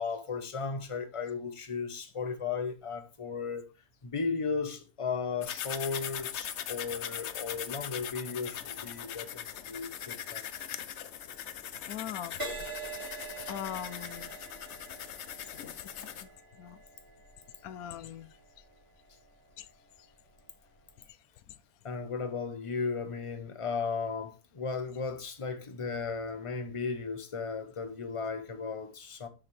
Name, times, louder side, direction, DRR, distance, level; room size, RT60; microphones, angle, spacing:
voice 1, 0.0-3.6 4.0-10.4 21.8-29.3, left 5 dB, 25° left, 0.8 m, -35 dB
sound 1, 5.4-16.2, left 9 dB, 60° left, 0.8 m, -40 dB
voice 2, 11.9-12.3 13.5-14.3 16.6-16.8 17.6-18.2, left 11 dB, 80° left, 1.1 m, -39 dB
Crash cymbal, 12.4-20.0 20.7-21.0, right 3 dB, 40° right, 3.3 m, -45 dB
6.9 x 6.8 x 3.3 m
omnidirectional pair, 1.6 m